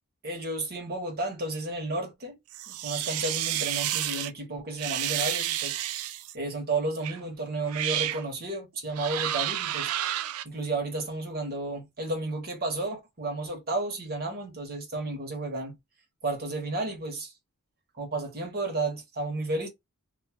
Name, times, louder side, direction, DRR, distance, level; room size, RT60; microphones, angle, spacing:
voice 1, 0.2-2.4 2.7-5.7 6.3-9.9 10.4-15.8 16.2-17.3 17.9-19.7, right 2 dB, 45° right, 1.3 m, -32 dB
sound 1, 2.5-4.3 4.8-6.3 7.0-7.2 7.7-8.2 8.9-10.4, right 12 dB, 75° right, 0.4 m, -30 dB
2.7 x 2.4 x 2.7 m
head